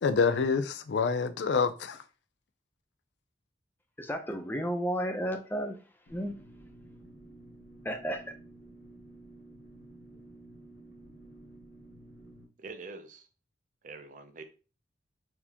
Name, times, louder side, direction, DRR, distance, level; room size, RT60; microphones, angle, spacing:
voice 1, 0.0-2.0, left 5 dB, 65° left, 0.4 m, -27 dB
voice 2, 4.0-5.8 6.1-6.4 7.8-8.2, equal, 10° left, 0.6 m, -32 dB
sound 1, 6.1-12.5, right 2 dB, 90° left, 1.2 m, -52 dB
voice 3, 12.6-13.3 13.8-14.4, right 3 dB, 45° right, 0.5 m, -45 dB
4.4 x 3.5 x 2.9 m
head